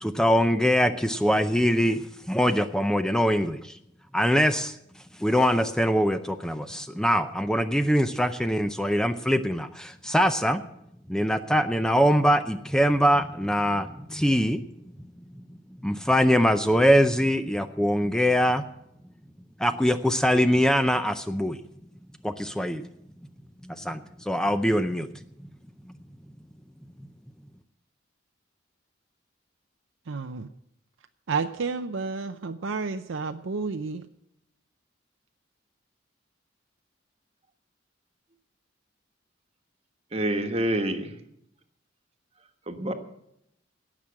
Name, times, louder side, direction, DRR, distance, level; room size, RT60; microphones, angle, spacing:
voice 1, 0.0-3.8 4.1-4.8 5.2-10.6 11.1-14.6 15.8-18.6 19.6-21.6 22.2-22.8 23.6-25.1, equal, 5° left, 9 dB, 0.5 m, -23 dB
voice 2, 30.1-30.5 31.3-34.0, right 4 dB, 80° right, 7 dB, 0.6 m, -31 dB
voice 3, 40.1-41.1 42.7-42.9, right 1 dB, 30° right, 6 dB, 1.3 m, -27 dB
17.5 x 6.2 x 8.7 m, 0.78 s
head